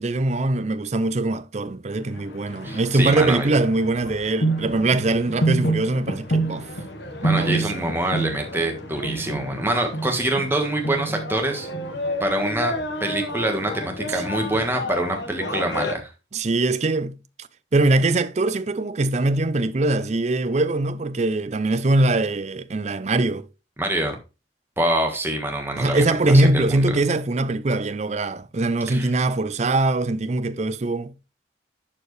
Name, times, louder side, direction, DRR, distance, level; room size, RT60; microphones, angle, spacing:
voice 1, 0.0-6.7 7.2-7.9 14.1-14.2 16.3-23.5 25.8-31.1, right 2 dB, 35° right, 0.5 m, -22 dB
sound 1, 1.9-15.9, right 1 dB, 65° left, 1.4 m, -29 dB
voice 2, 2.6-3.5 7.2-11.7 12.2-12.7 13.0-16.1 23.8-24.2 24.8-27.0 28.9-29.1, right 1 dB, 10° right, 1.5 m, -25 dB
11.0 x 4.6 x 3.2 m
head